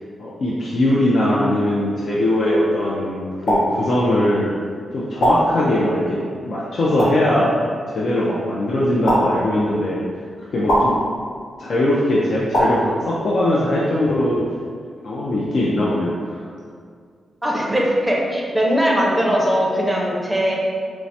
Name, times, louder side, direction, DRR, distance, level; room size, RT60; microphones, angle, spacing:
voice 1, 0.2-4.5 4.9-10.0 10.4-11.0 11.6-14.5 15.0-16.4, left 1 dB, 55° left, -6 dB, 0.4 m, -20 dB
sound 1, 3.4-3.6 5.2-5.3 7.0-7.1 9.0-9.2 10.7-10.8 12.5-12.7, equal, 75° left, 1.1 m, -17 dB
voice 2, 17.4-20.6, equal, 5° right, -3 dB, 0.6 m, -20 dB
4.5 x 2.0 x 2.7 m, 2.1 s
wide cardioid pair, 125°, 0 cm